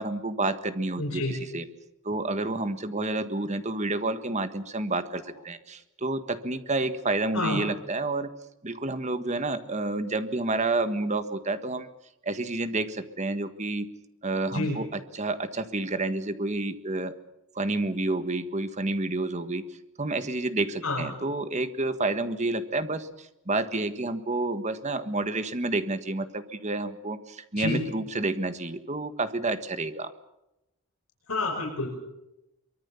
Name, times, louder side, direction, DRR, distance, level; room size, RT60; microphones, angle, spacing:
voice 1, 0.0-1.6 2.0-8.3 8.6-11.9 12.2-13.9 14.2-17.2 17.5-19.6 20.0-30.1, right 2 dB, 30° right, 10 dB, 1.6 m, -29 dB
voice 2, 1.0-1.3 7.3-7.6 14.5-14.8 20.8-21.1 27.6-27.8 31.3-31.9, left 2 dB, 75° left, 1 dB, 5.3 m, -28 dB
24.0 x 23.0 x 7.1 m, 0.89 s
head